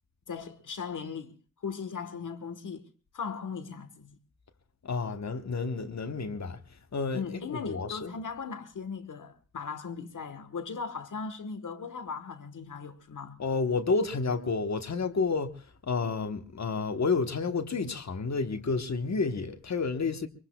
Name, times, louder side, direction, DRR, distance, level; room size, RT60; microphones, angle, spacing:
voice 1, 0.3-2.9 3.1-4.2 7.1-13.4, left 5 dB, 85° left, 1.4 m, -38 dB
voice 2, 4.8-6.6 6.9-8.1 13.4-20.3, left 4 dB, 60° left, 1.3 m, -30 dB
24.0 x 23.5 x 2.3 m
wide cardioid pair, 75°, 30 cm